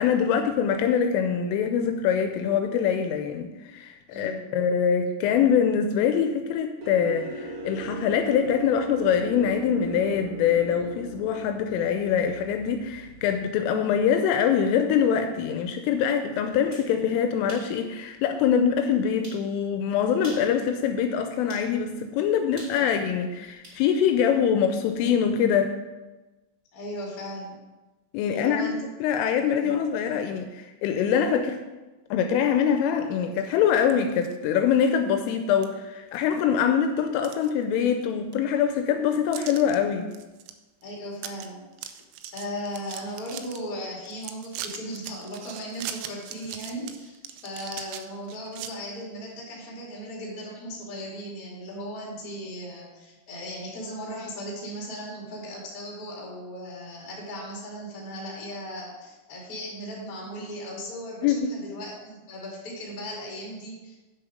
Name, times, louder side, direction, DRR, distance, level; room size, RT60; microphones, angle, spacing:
voice 1, 0.0-25.7 28.1-28.7 29.0-31.6 32.1-40.1 61.2-61.5, left 8 dB, 85° left, 6 dB, 3.0 m, -24 dB
voice 2, 4.1-4.5 26.7-27.6 28.3-28.8 29.6-29.7 40.8-42.0 42.3-64.0, equal, 35° left, -3 dB, 1.5 m, -37 dB
sound 1, 6.8-13.4, right 3 dB, 65° right, 1.4 m, -39 dB
sound 2, 16.5-16.9 17.5-17.7 18.2-18.3 19.2-19.4 20.1-20.5 21.5-21.7 22.6-23.8, right 1 dB, 20° right, 1.8 m, -44 dB
sound 3, 33.8-34.4 34.8-34.9 35.6-35.7 36.1-36.6 37.0-38.0 38.3-38.4 39.3-39.8 40.1-40.5 40.8-40.9 41.2-41.5 41.7-43.6 44.1-48.7, right 10 dB, 85° right, 3.4 m, -40 dB
9.2 x 6.8 x 5.1 m, 1.1 s
omnidirectional pair, 6.0 m